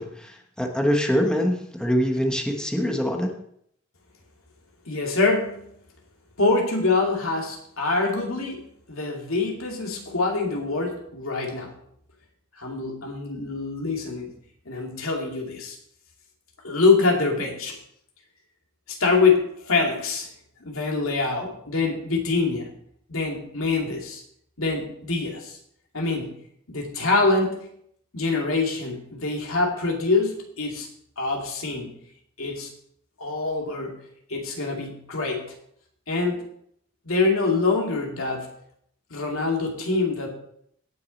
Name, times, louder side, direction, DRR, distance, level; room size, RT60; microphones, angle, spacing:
voice 1, 0.0-3.3, equal, 5° left, 2 dB, 1.1 m, -24 dB
voice 2, 4.9-5.6 6.4-8.6 8.9-11.7 12.6-14.3 14.6-15.8 16.6-17.8 18.9-20.3 20.6-22.7 23.1-24.2 24.6-25.6 25.9-26.3 26.7-27.7 28.1-30.9 31.2-31.9 32.4-32.7 33.2-33.9 34.3-35.4 36.1-36.4 37.0-38.5 39.1-40.3, left 3 dB, 85° left, 0 dB, 2.7 m, -25 dB
17.0 x 6.4 x 4.2 m, 0.69 s
head